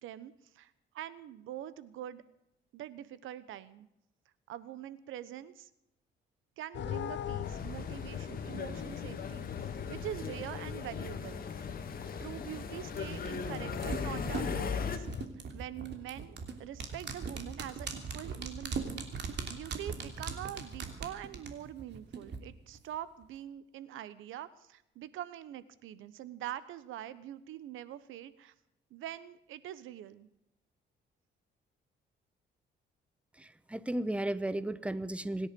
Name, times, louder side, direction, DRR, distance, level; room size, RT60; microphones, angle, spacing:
voice 1, 0.0-2.2 2.7-3.9 4.5-5.7 6.6-9.5 9.9-11.4 12.2-15.1 15.5-28.5 28.9-30.3, right 12 dB, 85° right, 16 dB, 1.1 m, -44 dB
sound 1, 6.7-15.3, left 9 dB, 65° left, 1.1 m, -42 dB
sound 2, 7.4-15.0, left 6 dB, 45° left, 2.1 m, -39 dB
sound 3, 13.0-22.4 22.7-22.8, right 5 dB, 60° right, 3.0 m, -40 dB
voice 2, 33.4-35.5, right 1 dB, 5° right, 16 dB, 0.9 m, -34 dB
25.5 x 10.5 x 5.3 m, 0.83 s
cardioid pair, 90°, 20 cm